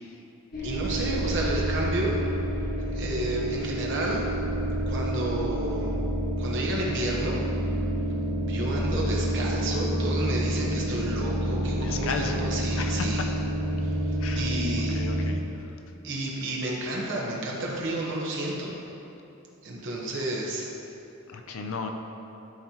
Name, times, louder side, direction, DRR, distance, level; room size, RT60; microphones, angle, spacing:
sound 1, 0.5-15.3, right 1 dB, 45° left, 1.3 m, -28 dB
voice 1, 0.6-2.1 2.9-4.2 4.9-5.9 6.4-7.4 8.5-13.3 13.8-15.0 16.0-18.8 19.6-20.7, right 1 dB, 55° right, -3 dB, 1.1 m, -31 dB
voice 2, 11.8-12.5 12.8-13.3 14.2-14.5 14.9-15.7 21.3-21.9, left 4 dB, 65° left, 4 dB, 0.5 m, -35 dB
11.5 x 4.2 x 2.9 m, 2.9 s
head